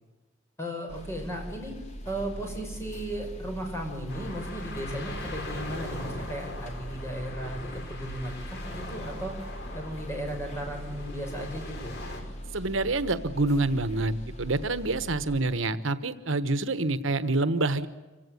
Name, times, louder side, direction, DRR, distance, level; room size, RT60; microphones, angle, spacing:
voice 1, 0.6-1.7 2.1-9.3 9.7-11.9, right 1 dB, 15° left, 2 dB, 5.9 m, -36 dB
sound 1, 0.9-15.4, equal, 35° left, 2.6 m, -41 dB
sound 2, 4.1-12.2, left 1 dB, 55° left, 5.4 m, -41 dB
voice 2, 12.5-17.9, right 2 dB, 75° right, 13 dB, 1.2 m, -27 dB
26.0 x 16.5 x 9.4 m, 1.2 s
head